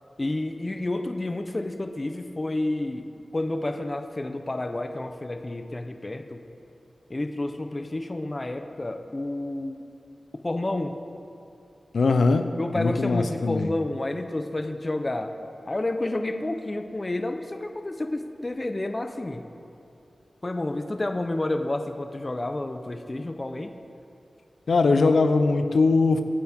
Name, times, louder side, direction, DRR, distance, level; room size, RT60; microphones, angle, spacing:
voice 1, 0.2-3.1 3.3-6.4 7.1-9.8 10.4-11.0 12.6-15.3 15.7-19.4 20.4-23.7, left 2 dB, 25° left, 6 dB, 0.8 m, -30 dB
voice 2, 11.9-12.5 12.7-13.7 24.7-26.2, left 3 dB, 80° left, 8 dB, 0.6 m, -21 dB
24.0 x 9.4 x 3.6 m, 2.6 s
wide cardioid pair, 115°, 0 cm